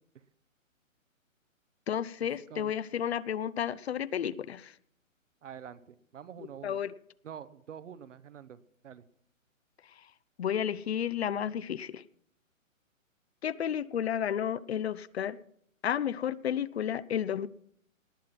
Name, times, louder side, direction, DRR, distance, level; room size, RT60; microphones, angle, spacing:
voice 1, 1.9-4.7 6.6-6.9 10.4-12.0 13.4-15.4 15.8-17.5, left 9 dB, 50° left, 19 dB, 0.6 m, -32 dB
voice 2, 5.4-6.8 7.2-9.0, right 8 dB, 65° right, 15 dB, 1.1 m, -46 dB
19.0 x 7.6 x 5.9 m, 0.68 s
hypercardioid pair, 150°, 40 cm